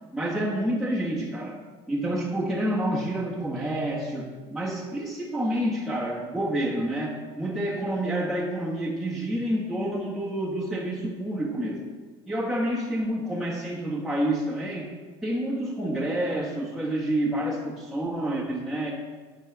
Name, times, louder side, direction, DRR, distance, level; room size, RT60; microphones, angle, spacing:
voice 1, 0.1-1.6 1.9-11.8 12.3-14.9 15.2-18.9, right 1 dB, 5° right, -5 dB, 1.3 m, -28 dB
9.9 x 4.1 x 7.2 m, 1.4 s
supercardioid pair, 115°, 12 cm